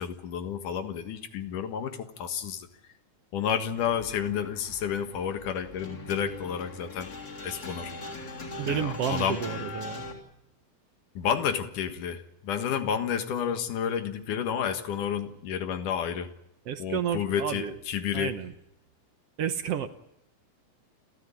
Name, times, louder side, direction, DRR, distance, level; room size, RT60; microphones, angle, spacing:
voice 1, 0.0-2.7 3.3-7.1 7.4-7.9 8.7-9.4 11.1-16.3 16.8-18.3, left 8 dB, 90° left, 8 dB, 3.1 m, -30 dB
sound 1, 3.8-10.1, left 2 dB, 30° left, 3.8 m, -40 dB
voice 2, 8.6-10.0 16.7-17.7 18.1-18.5 19.4-19.9, right 9 dB, 60° right, 9 dB, 1.8 m, -31 dB
29.5 x 14.0 x 9.9 m, 0.85 s
omnidirectional pair, 3.5 m